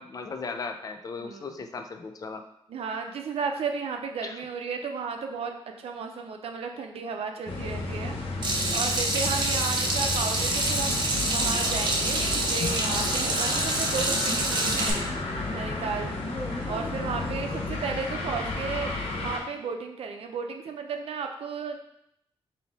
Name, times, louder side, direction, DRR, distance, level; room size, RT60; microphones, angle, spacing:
voice 1, 0.0-2.4 4.2-4.4, left 4 dB, 40° left, 6 dB, 0.4 m, -37 dB
voice 2, 1.2-1.6 2.7-5.5 5.8-15.1 15.5-16.2 16.7-18.9 19.2-21.8, right 5 dB, 80° right, 4 dB, 0.5 m, -34 dB
sound 1, 7.5-19.4, left 2 dB, 75° left, 0.7 m, -32 dB
Water tap faucet / Sink (filling or washing), 8.4-14.9, right 2 dB, 50° right, 0.7 m, -27 dB
3.2 x 2.7 x 4.1 m, 0.77 s
wide cardioid pair, 120°, 10 cm